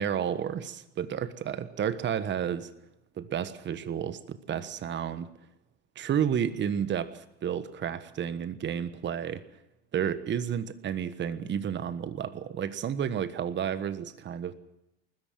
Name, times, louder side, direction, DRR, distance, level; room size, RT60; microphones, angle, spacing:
voice 1, 0.0-2.7 3.2-5.3 5.9-9.4 9.9-14.5, right 8 dB, 35° right, 14 dB, 1.3 m, -31 dB
30.0 x 13.5 x 7.5 m, 0.91 s
hypercardioid pair, 80°, 34 cm